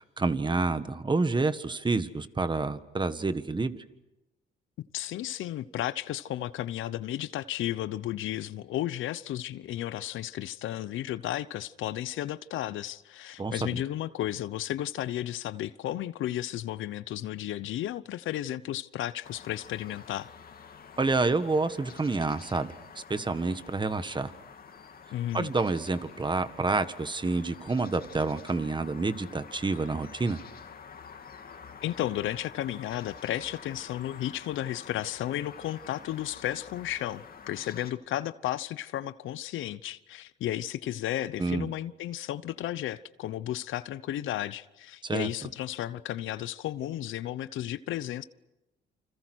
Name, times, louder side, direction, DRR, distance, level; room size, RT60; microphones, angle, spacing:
voice 1, 0.0-3.8 13.4-13.7 21.0-24.3 25.3-30.4 41.4-41.7 45.0-45.3, right 3 dB, 25° right, 1.6 m, -28 dB
voice 2, 4.9-20.3 25.1-25.5 31.8-48.2, left 13 dB, 80° left, 0.8 m, -33 dB
sound 1, 19.2-37.9, left 6 dB, 50° left, 2.7 m, -48 dB
28.5 x 26.5 x 6.3 m
cardioid pair, 90°, 20 cm